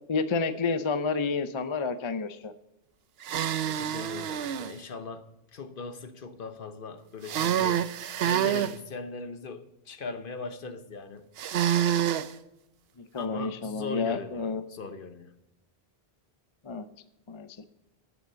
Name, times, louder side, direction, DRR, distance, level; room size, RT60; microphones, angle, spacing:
voice 1, 0.1-2.5 13.0-14.6 16.6-16.9 17.3-17.6, left 4 dB, 35° left, 11 dB, 0.6 m, -30 dB
sound 1, 3.2-4.7 7.2-8.7 11.4-12.3, right 10 dB, 70° right, 0.8 m, -27 dB
voice 2, 3.6-5.3 5.5-7.8 8.2-11.3 13.2-15.3, left 4 dB, 55° left, 10 dB, 1.0 m, -40 dB
11.0 x 7.0 x 6.8 m, 0.91 s
omnidirectional pair, 1.1 m